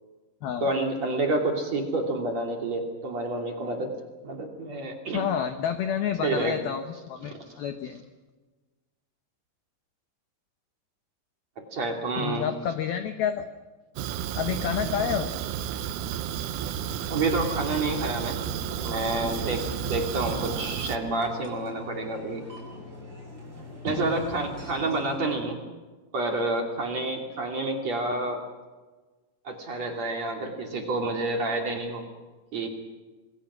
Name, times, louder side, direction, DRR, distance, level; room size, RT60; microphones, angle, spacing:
voice 1, 0.6-3.9 4.2-5.3 6.2-6.6 7.2-7.4 11.6-12.4 17.1-18.4 18.8-22.4 23.8-25.6 26.1-28.4 29.4-32.0 32.5-32.7, right 2 dB, 40° right, 2 dB, 3.0 m, -29 dB
voice 2, 5.1-8.0 12.2-13.4 14.3-15.3 24.0-24.3, left 8 dB, 80° left, 7 dB, 2.2 m, -29 dB
Fire, 14.0-21.0, right 9 dB, 80° right, 3.5 m, -32 dB
sound 1, 16.7-25.4, left 1 dB, 20° right, 6.8 m, -42 dB
27.0 x 21.5 x 6.2 m, 1.3 s
omnidirectional pair, 5.9 m